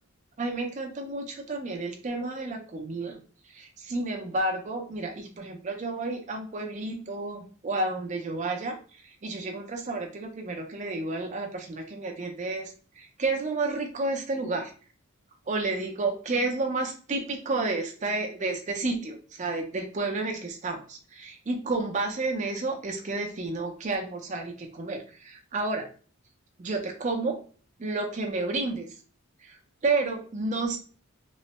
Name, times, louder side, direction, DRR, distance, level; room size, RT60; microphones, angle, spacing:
voice 1, 0.4-3.2 3.5-8.8 9.0-14.7 15.5-25.9 26.6-27.4 27.8-28.9 29.4-30.8, right 3 dB, 35° right, 3 dB, 0.5 m, -31 dB
3.0 x 2.1 x 2.9 m, 0.39 s
head